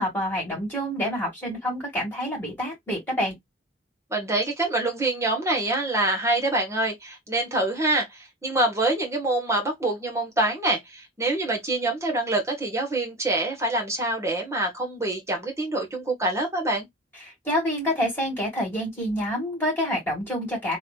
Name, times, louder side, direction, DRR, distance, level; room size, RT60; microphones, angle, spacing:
voice 1, 0.0-3.4 17.2-20.8, equal, 10° left, 2.0 m, -27 dB
voice 2, 4.1-16.9, right 2 dB, 15° right, 1.4 m, -25 dB
3.2 x 3.1 x 2.5 m
head